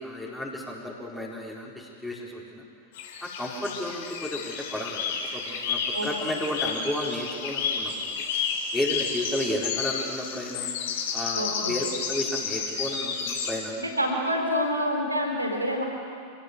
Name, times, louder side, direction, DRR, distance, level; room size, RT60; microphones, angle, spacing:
voice 1, 0.0-2.6 3.2-8.2 8.7-10.7 11.1-13.7, left 1 dB, 5° left, -4 dB, 4.3 m, -33 dB
sound 1, 3.0-13.5, left 5 dB, 55° left, 3.7 m, -31 dB
voice 2, 11.4-11.8 13.8-15.9, equal, 85° right, 2 dB, 4.1 m, -27 dB
27.0 x 17.0 x 8.0 m, 2.3 s
figure-of-eight pair, 90°, 0 cm